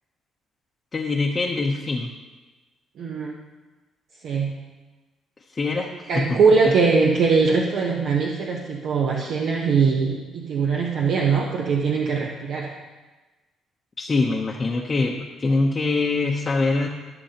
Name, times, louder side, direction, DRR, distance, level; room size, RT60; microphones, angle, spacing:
voice 1, 0.9-2.1 5.5-6.8 14.0-16.9, left 3 dB, 30° left, -1 dB, 0.7 m, -24 dB
voice 2, 3.0-3.3 4.2-4.5 6.1-12.7, right 5 dB, 65° right, 0 dB, 0.8 m, -21 dB
15.0 x 6.8 x 2.9 m, 1.2 s
cardioid pair, 110°, 0 cm